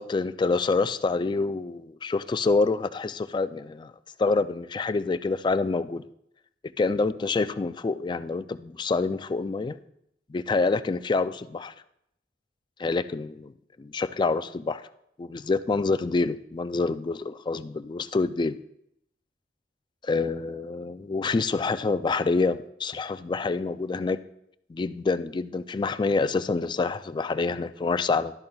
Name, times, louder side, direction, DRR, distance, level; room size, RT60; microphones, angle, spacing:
voice 1, 0.0-3.9 4.2-6.0 6.8-9.8 10.3-11.7 12.8-13.5 13.8-14.8 15.2-18.6 20.0-24.2 24.7-28.3, left 3 dB, 25° left, 13 dB, 0.3 m, -27 dB
12.5 x 12.0 x 2.3 m, 0.75 s
head